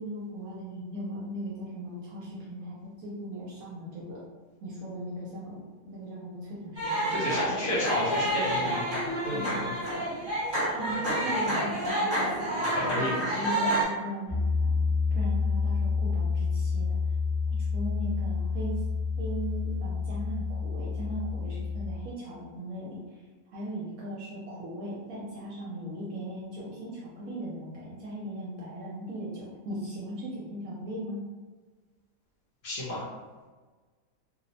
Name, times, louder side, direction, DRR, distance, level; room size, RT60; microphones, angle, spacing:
voice 1, 0.0-4.2 4.6-7.4 9.3-10.2 10.7-12.3 12.8-14.8 15.1-17.0 17.7-18.8 19.2-23.0 23.5-31.2, equal, 75° right, -6 dB, 1.0 m, -38 dB
sound 1, 6.8-13.8, right 1 dB, 40° right, 1.2 m, -29 dB
voice 2, 7.1-8.9 9.2-9.7 12.7-13.1 32.6-33.0, left 1 dB, 80° left, -8 dB, 1.2 m, -31 dB
Piano, 14.3-21.9, left 4 dB, 30° left, 0.5 m, -29 dB
2.9 x 2.0 x 2.6 m, 1.4 s
omnidirectional pair, 1.5 m